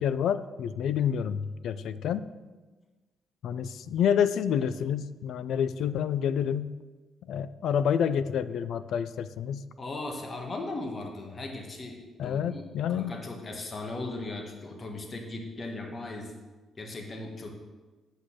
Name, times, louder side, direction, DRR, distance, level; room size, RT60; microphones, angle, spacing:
voice 1, 0.0-2.3 3.4-6.7 7.3-9.6 12.2-13.1, left 8 dB, 75° left, 14 dB, 0.4 m, -28 dB
voice 2, 9.8-12.6 12.9-16.3 16.8-17.5, left 2 dB, 35° left, 2 dB, 1.6 m, -38 dB
8.1 x 6.2 x 6.4 m, 1.3 s
cardioid pair, 90°, 0 cm